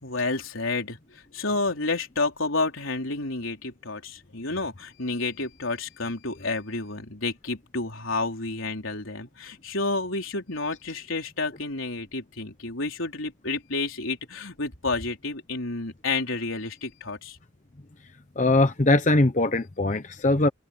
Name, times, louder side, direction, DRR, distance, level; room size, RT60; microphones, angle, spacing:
voice 1, 0.0-17.4, left 3 dB, 80° left, 3.9 m, -30 dB
voice 2, 18.4-20.5, left 2 dB, 35° left, 0.8 m, -21 dB
open air
head